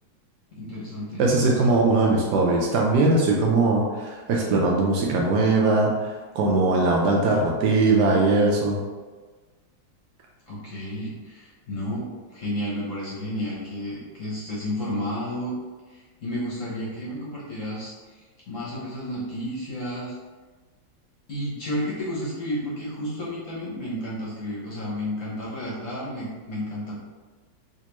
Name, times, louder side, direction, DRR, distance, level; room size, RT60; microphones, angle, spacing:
voice 1, 0.5-1.2 10.5-15.6 15.9-20.1 21.3-27.0, equal, 55° left, -6 dB, 1.0 m, -32 dB
voice 2, 1.2-8.8, right 3 dB, 70° right, -1 dB, 1.1 m, -20 dB
3.4 x 2.9 x 2.9 m, 1.3 s
omnidirectional pair, 2.0 m